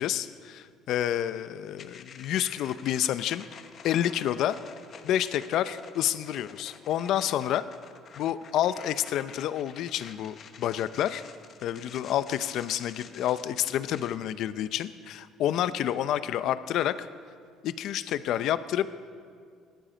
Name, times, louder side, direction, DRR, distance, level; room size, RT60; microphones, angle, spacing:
voice 1, 0.0-3.4 3.8-4.6 5.0-7.7 8.2-11.2 11.6-17.1 17.6-18.9, left 11 dB, 65° left, 13 dB, 0.6 m, -29 dB
sound 1, 1.8-14.1, left 7 dB, 45° left, 0.9 m, -49 dB
18.5 x 12.0 x 5.2 m, 2.1 s
cardioid pair, 115°, 0 cm